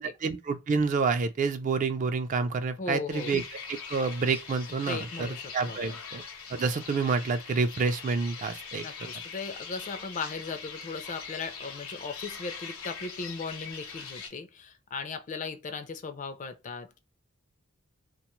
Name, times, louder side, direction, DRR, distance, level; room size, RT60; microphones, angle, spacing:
voice 1, 0.0-3.4 3.7-6.2 6.5-8.8, right 4 dB, 35° right, 0.3 m, -28 dB
voice 2, 2.8-3.3 4.8-6.0 8.8-17.0, left 4 dB, 35° left, 0.4 m, -37 dB
sound 1, 3.1-14.3, left 5 dB, 80° left, 0.9 m, -42 dB
2.8 x 2.3 x 2.9 m
head